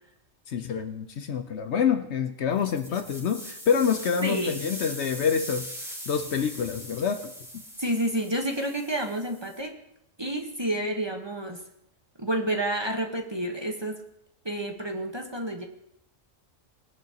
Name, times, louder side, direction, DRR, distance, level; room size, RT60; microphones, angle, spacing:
voice 1, 0.5-5.7 6.1-7.6, left 7 dB, 65° left, 8 dB, 0.9 m, -27 dB
sound 1, 2.5-9.6, equal, ahead, 2.9 m, -41 dB
voice 2, 4.2-4.6 7.8-9.7 10.2-11.6 12.2-14.0 14.4-15.6, right 1 dB, 20° right, 3 dB, 1.1 m, -29 dB
20.0 x 10.5 x 2.9 m, 0.75 s
omnidirectional pair, 1.3 m